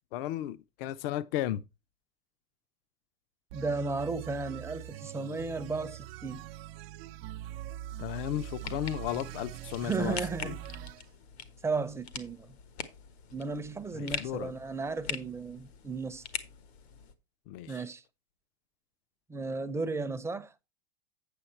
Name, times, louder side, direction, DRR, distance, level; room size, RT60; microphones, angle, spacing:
voice 1, 0.1-1.6 8.0-10.6 13.9-14.5 17.5-17.8, left 13 dB, 60° left, 0.6 m, -35 dB
voice 2, 3.5-6.5 9.8-10.6 11.6-12.6 13.3-16.2 17.7-18.0 19.3-20.5, right 4 dB, 10° right, 0.6 m, -34 dB
sound 1, 3.5-11.0, right 13 dB, 65° right, 0.6 m, -43 dB
sound 2, 8.4-17.1, left 8 dB, 85° left, 1.4 m, -43 dB
8.7 x 6.3 x 4.3 m
hypercardioid pair, 115°, 31 cm